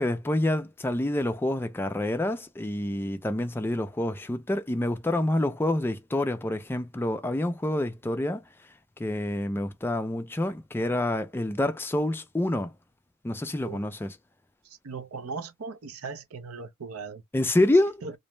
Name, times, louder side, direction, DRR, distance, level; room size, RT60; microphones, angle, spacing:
voice 1, 0.0-8.4 9.0-12.7 13.2-14.2 17.3-18.0, left 1 dB, 10° left, 0.3 m, -27 dB
voice 2, 14.8-17.2 18.0-18.1, right 4 dB, 75° right, 0.6 m, -38 dB
2.5 x 2.0 x 3.0 m
head